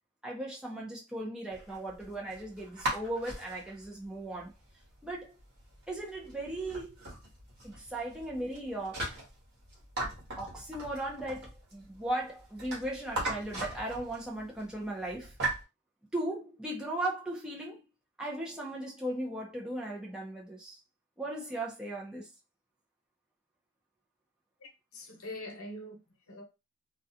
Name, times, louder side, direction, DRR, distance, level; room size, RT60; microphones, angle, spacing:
voice 1, 0.2-4.5 5.0-5.3 5.9-6.9 7.6-9.1 10.4-15.3 16.1-17.8 18.2-20.8 21.2-22.3, right 1 dB, 5° right, 0.6 m, -37 dB
sound 1, 1.5-15.6, right 2 dB, 50° right, 1.1 m, -40 dB
voice 2, 24.6-26.4, left 1 dB, 75° left, 0.8 m, -44 dB
2.4 x 2.3 x 2.6 m
head